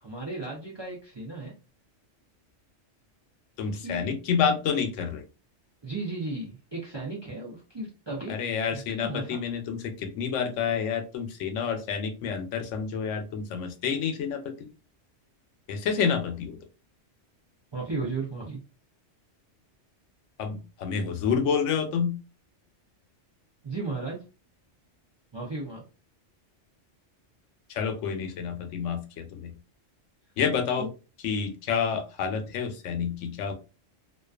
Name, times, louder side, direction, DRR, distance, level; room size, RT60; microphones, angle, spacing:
voice 1, 0.0-1.5 3.8-4.1 5.8-8.3 8.7-9.4 17.7-18.6 23.6-24.2 25.3-25.8 30.8-30.9, right 3 dB, 40° right, -2 dB, 0.4 m, -35 dB
voice 2, 3.6-5.2 8.3-14.7 15.7-16.6 20.4-22.1 27.7-29.5 30.4-30.9 31.2-33.5, left 6 dB, 85° left, 7 dB, 0.9 m, -29 dB
2.4 x 2.3 x 2.3 m, 0.32 s
omnidirectional pair, 1.2 m